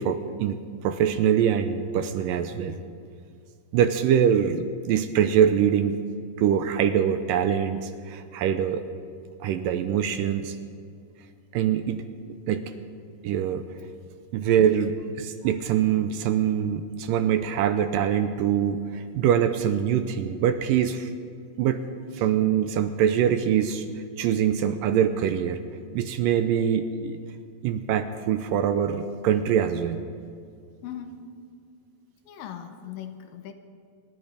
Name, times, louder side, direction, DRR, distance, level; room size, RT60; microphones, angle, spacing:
voice 1, 0.0-2.8 3.7-6.0 6.4-8.8 9.4-10.6 11.5-12.0 12.5-12.6 13.2-13.6 14.3-21.1 21.6-21.8 22.1-23.9 24.2-25.6 25.9-27.2 27.6-30.0, right 9 dB, 80° right, 9 dB, 2.2 m, -24 dB
voice 2, 30.8-31.4 32.3-33.5, left 8 dB, 75° left, 7 dB, 2.5 m, -39 dB
25.5 x 11.0 x 5.0 m, 2.2 s
omnidirectional pair, 4.2 m